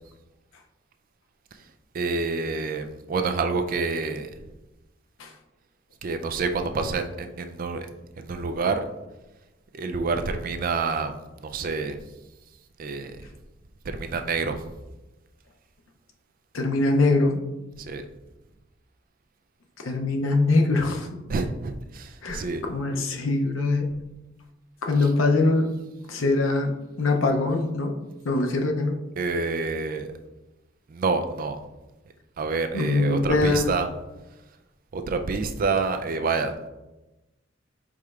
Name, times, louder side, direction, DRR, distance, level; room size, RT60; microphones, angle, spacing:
voice 1, 1.9-4.3 6.0-7.9 8.2-8.8 9.7-12.0 12.8-13.3 13.8-14.8 17.8-18.0 21.3-22.6 25.0-25.1 29.2-30.1 30.9-31.6 32.4-33.9 34.9-36.5, right 4 dB, 45° right, 7 dB, 0.4 m, -28 dB
voice 2, 16.5-17.4 19.8-21.1 22.2-23.9 24.8-25.7 26.1-28.0 28.2-29.0 32.7-33.7, left 2 dB, 90° left, 3 dB, 0.6 m, -23 dB
4.9 x 4.3 x 2.4 m, 1.0 s
head